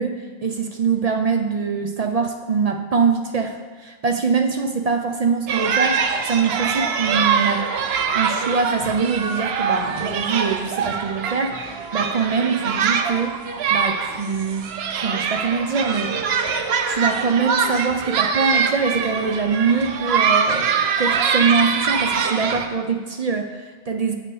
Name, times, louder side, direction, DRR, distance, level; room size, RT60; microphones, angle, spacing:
voice 1, 0.0-7.6 8.1-13.4 13.7-14.6 15.0-16.1 16.9-24.2, right 5 dB, 50° right, 5 dB, 0.5 m, -23 dB
sound 1, 5.5-22.7, right 6 dB, 80° right, 0.9 m, -23 dB
7.8 x 5.9 x 4.7 m, 1.4 s
omnidirectional pair, 1.0 m